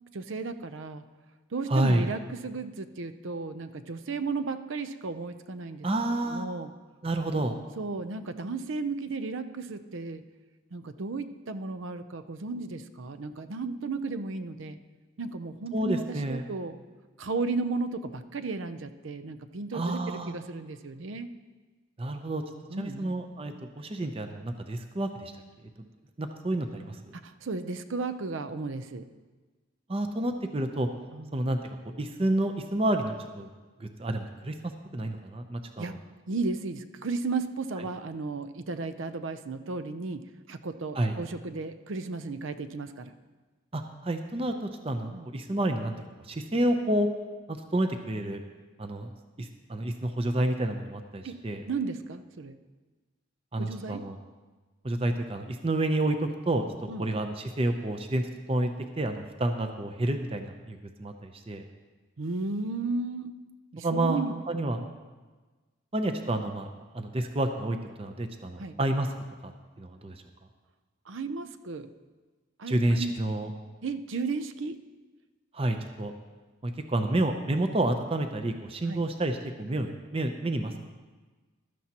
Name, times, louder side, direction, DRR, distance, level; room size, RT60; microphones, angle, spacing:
voice 1, 0.1-1.0 1.5-5.9 6.3-6.7 7.8-10.2 10.7-14.8 15.2-16.8 17.2-21.3 22.7-23.1 27.1-29.0 31.1-31.3 35.8-35.9 36.3-43.1 45.1-45.3 51.2-51.4 51.7-52.6 53.6-54.0 56.9-57.1 62.2-63.3 63.7-64.4 64.8-64.9 68.6-68.8 71.1-71.9 72.6-73.1 73.8-74.8 78.9-79.0, right 3 dB, 70° right, 10 dB, 0.6 m, -34 dB
voice 2, 1.7-2.0 5.8-6.4 7.0-7.6 15.7-16.4 19.7-20.3 22.0-22.4 22.8-25.3 25.8-25.9 26.2-27.1 29.9-30.9 31.3-33.5 33.8-34.5 34.9-36.0 40.9-41.2 43.7-45.9 46.2-47.1 47.5-48.4 48.8-49.1 49.4-51.6 53.5-54.1 54.8-56.6 57.0-61.6 63.8-64.8 65.9-66.7 66.9-69.1 69.4-69.5 69.8-70.2 72.7-73.5 75.5-76.1 76.6-80.8, right 1 dB, 30° right, 6 dB, 0.6 m, -29 dB
15.5 x 12.0 x 2.9 m, 1.3 s
head